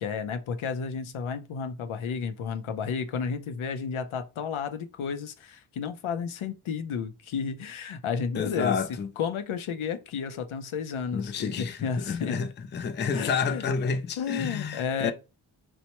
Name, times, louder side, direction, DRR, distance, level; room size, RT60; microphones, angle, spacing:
voice 1, 0.0-8.8 9.2-12.4 13.1-13.7 14.2-15.1, left 6 dB, 80° left, 0.6 m, -32 dB
voice 2, 8.3-9.1 11.1-15.1, left 6 dB, 25° left, 0.3 m, -30 dB
4.3 x 2.1 x 2.9 m
wide cardioid pair, 65°, 48 cm